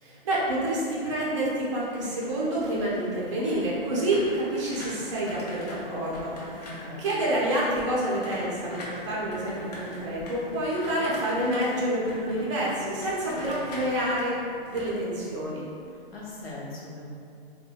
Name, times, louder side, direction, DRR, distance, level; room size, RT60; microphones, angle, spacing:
voice 1, 0.0-6.7 7.0-14.4 14.7-15.6, right 1 dB, 30° right, -6 dB, 0.5 m, -28 dB
sound 1, 1.8-15.8 16.2-16.5, left 1 dB, 45° left, 0.5 m, -43 dB
voice 2, 6.6-7.0 16.1-17.1, left 2 dB, 80° left, -5 dB, 0.8 m, -40 dB
2.6 x 2.1 x 2.2 m, 2.4 s
hypercardioid pair, 160°, 30 cm